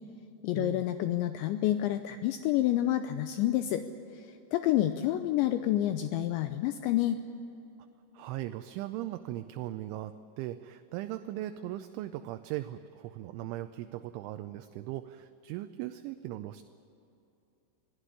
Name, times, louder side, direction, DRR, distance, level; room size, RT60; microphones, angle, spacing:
voice 1, 0.4-3.8 4.2-4.3 4.5-7.2, left 13 dB, 80° left, 9 dB, 2.7 m, -28 dB
voice 2, 8.1-16.6, right 14 dB, 80° right, 9 dB, 2.9 m, -39 dB
25.0 x 16.5 x 9.9 m, 2.9 s
omnidirectional pair, 5.8 m